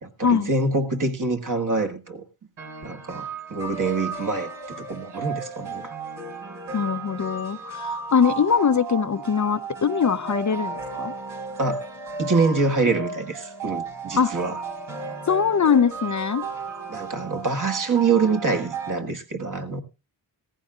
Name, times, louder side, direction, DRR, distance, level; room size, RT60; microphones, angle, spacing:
voice 1, 0.0-2.2 2.8-5.9 11.6-11.9 12.2-14.6 16.9-19.8, right 4 dB, 40° right, 1.9 m, -25 dB
sound 1, 2.6-19.0, right 4 dB, 75° right, 4.6 m, -34 dB
voice 2, 6.7-11.1 14.2-14.3 15.3-16.4, left 6 dB, 40° left, 0.7 m, -22 dB
17.0 x 14.5 x 2.4 m
cardioid pair, 65°, 46 cm